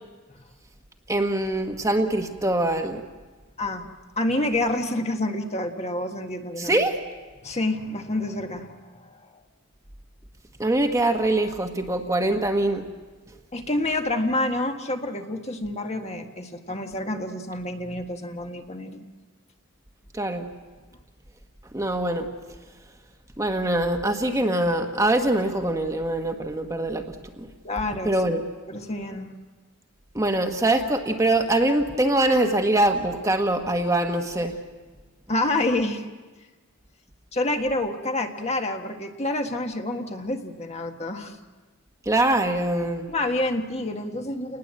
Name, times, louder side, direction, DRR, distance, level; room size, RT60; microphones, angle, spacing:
voice 1, 1.1-3.0 6.6-7.0 10.6-12.9 20.1-20.5 21.7-22.3 23.4-27.5 28.0-28.4 30.1-34.6 42.0-43.1, right 1 dB, 15° right, 4 dB, 1.3 m, -23 dB
voice 2, 3.6-3.9 4.2-6.8 7.4-9.4 13.5-19.1 27.6-28.1 28.7-29.3 35.3-36.0 37.3-41.3 43.1-44.6, left 2 dB, 30° left, 4 dB, 1.6 m, -28 dB
29.5 x 19.5 x 7.7 m, 1.3 s
head